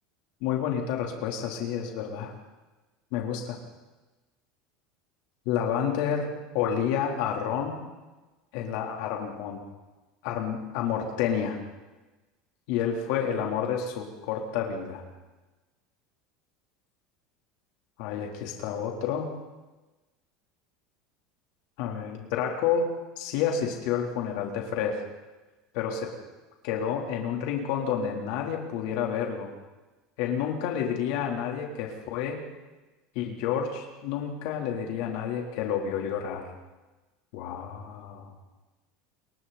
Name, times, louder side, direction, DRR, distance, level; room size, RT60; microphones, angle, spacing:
voice 1, 0.4-2.3 3.1-3.6 5.5-7.8 8.5-9.6 10.2-11.6 12.7-15.0 18.0-19.3 21.8-22.9 23.2-25.0 25.7-26.1 26.6-29.5 30.2-32.4 33.2-36.5 37.3-38.3, left 8 dB, 65° left, 1 dB, 3.7 m, -29 dB
29.0 x 22.0 x 4.3 m, 1.2 s
supercardioid pair, 145°, 0 cm